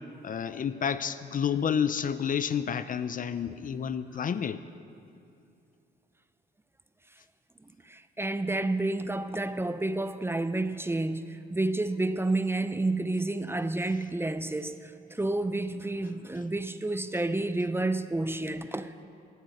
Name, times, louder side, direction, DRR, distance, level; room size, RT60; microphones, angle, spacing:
voice 1, 0.2-4.6, left 7 dB, 45° left, 13 dB, 0.6 m, -30 dB
voice 2, 7.6-19.0, right 2 dB, 10° right, 11 dB, 0.6 m, -30 dB
18.5 x 9.1 x 6.6 m, 2.6 s
cardioid pair, 90°, 20 cm